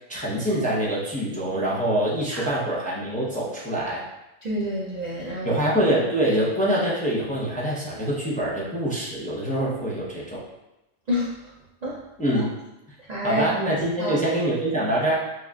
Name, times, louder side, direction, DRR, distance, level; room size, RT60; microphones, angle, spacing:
voice 1, 0.0-4.0 5.4-10.4 12.2-12.5 13.2-15.2, right 1 dB, 10° left, -7 dB, 0.6 m, -25 dB
voice 2, 4.4-5.6 11.1-11.3 11.8-11.9 13.1-13.4 14.0-14.1, left 1 dB, 50° right, -6 dB, 0.5 m, -28 dB
6.9 x 2.4 x 2.4 m, 0.94 s
omnidirectional pair, 1.3 m